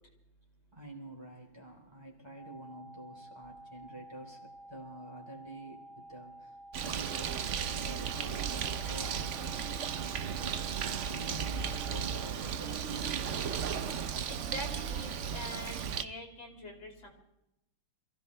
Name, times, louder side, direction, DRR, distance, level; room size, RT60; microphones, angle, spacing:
voice 1, 0.7-4.4 4.7-9.3 9.6-14.0 16.7-16.8, right 1 dB, 10° right, -1 dB, 3.5 m, -48 dB
sound 1, 2.4-12.4, right 1 dB, 45° left, 1.3 m, -51 dB
Bird, 6.7-16.0, right 7 dB, 65° right, 0.7 m, -35 dB
sound 2, 9.4-15.2, right 4 dB, 90° right, 3.7 m, -56 dB
voice 2, 14.5-17.1, left 1 dB, 75° left, 0 dB, 3.8 m, -44 dB
27.5 x 15.5 x 3.3 m, 0.86 s
omnidirectional pair, 2.2 m